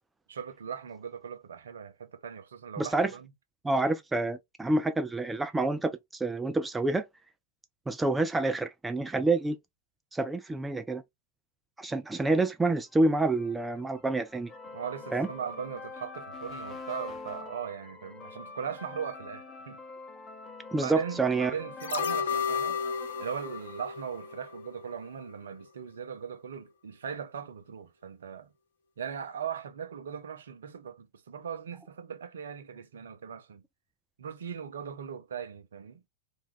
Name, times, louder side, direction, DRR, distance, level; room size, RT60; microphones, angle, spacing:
voice 1, 0.3-3.3 14.7-19.8 20.8-22.8 23.2-28.5 29.0-33.6 34.2-36.0, right 7 dB, 65° right, 0.5 m, -39 dB
voice 2, 2.8-3.1 3.6-7.0 7.9-9.6 10.1-11.0 11.8-14.5 15.1-15.3 20.7-21.5, right 2 dB, 10° right, 0.3 m, -28 dB
sound 1, 12.9-24.7, left 3 dB, 25° left, 0.7 m, -45 dB
sound 2, 21.8-24.9 25.3-25.4, left 6 dB, 65° left, 0.4 m, -33 dB
2.5 x 2.2 x 3.1 m
figure-of-eight pair, 90°, 0 cm